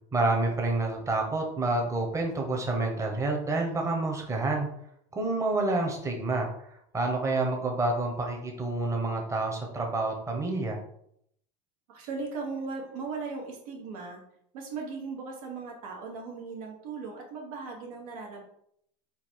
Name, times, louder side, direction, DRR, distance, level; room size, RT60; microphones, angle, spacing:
voice 1, 0.1-4.7 5.1-6.5 6.9-10.8, right 2 dB, 15° right, 1 dB, 0.9 m, -28 dB
voice 2, 11.9-14.2 14.5-18.4, right 4 dB, 80° right, 0 dB, 1.4 m, -38 dB
3.8 x 2.3 x 4.5 m, 0.71 s
supercardioid pair, 125°, 19 cm